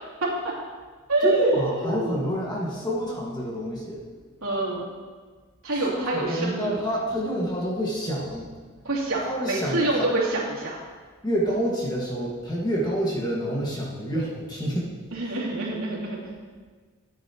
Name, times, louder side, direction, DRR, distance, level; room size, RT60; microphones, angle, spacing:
voice 1, 0.2-0.5 1.1-2.3 4.4-4.8 5.6-6.7 8.8-10.8 15.1-16.2, right 2 dB, 80° right, -6 dB, 2.9 m, -26 dB
voice 2, 1.2-4.0 5.9-8.5 9.3-10.1 11.2-14.9 15.2-15.4, equal, 20° left, -4 dB, 1.7 m, -28 dB
13.0 x 9.1 x 3.0 m, 1.5 s
head